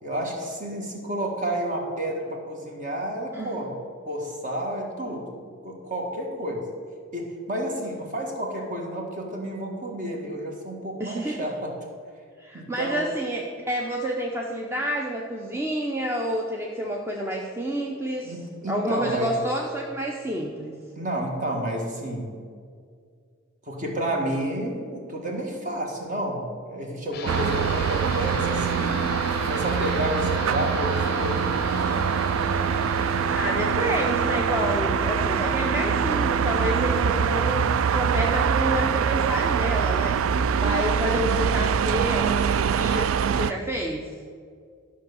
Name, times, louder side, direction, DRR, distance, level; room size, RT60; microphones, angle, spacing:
voice 1, 0.0-3.7 4.1-6.7 7.1-11.7 12.5-13.0 18.2-19.4 21.0-22.3 23.7-29.0 29.5-32.1, right 1 dB, 40° right, 1 dB, 1.8 m, -30 dB
voice 2, 11.0-11.4 12.4-18.4 18.7-20.8 33.3-44.1, right 1 dB, 10° right, -1 dB, 0.6 m, -29 dB
sound 1, 27.1-37.1, left 4 dB, 50° left, 0.5 m, -35 dB
sound 2, 27.3-43.5, right 7 dB, 75° right, 0.3 m, -24 dB
12.5 x 5.6 x 6.9 m, 2.1 s
head